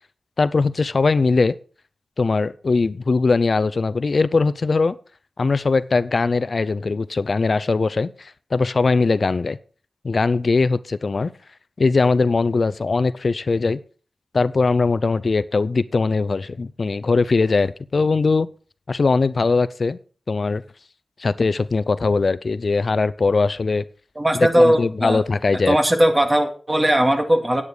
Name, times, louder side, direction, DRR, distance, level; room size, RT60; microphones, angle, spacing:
voice 1, 0.4-1.5 2.2-5.0 5.4-9.6 10.0-11.3 11.8-13.8 14.3-18.5 18.9-20.0 20.3-20.6 21.2-23.8 24.4-25.8, left 4 dB, 65° left, 0.5 m, -20 dB
voice 2, 24.2-25.2 25.7-27.6, right 1 dB, 25° right, 2.1 m, -18 dB
9.8 x 9.4 x 4.9 m
wide cardioid pair, 60°, 0 cm